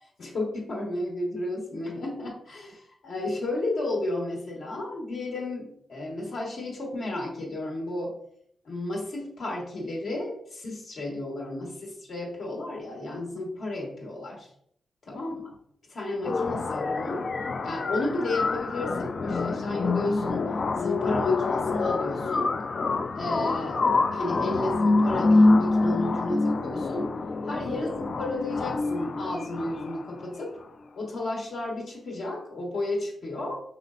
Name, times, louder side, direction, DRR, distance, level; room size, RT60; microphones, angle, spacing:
voice 1, 0.2-8.1 8.6-14.5 15.0-15.3 15.9-17.2 17.6-20.4 20.8-22.5 23.1-23.8 24.1-27.1 27.4-30.5 31.0-33.6, left 2 dB, 65° left, -2 dB, 1.3 m, -32 dB
sound 1, 16.2-30.2, left 3 dB, 45° left, 0.3 m, -26 dB
5.5 x 3.2 x 2.5 m, 0.66 s
wide cardioid pair, 125°, 0 cm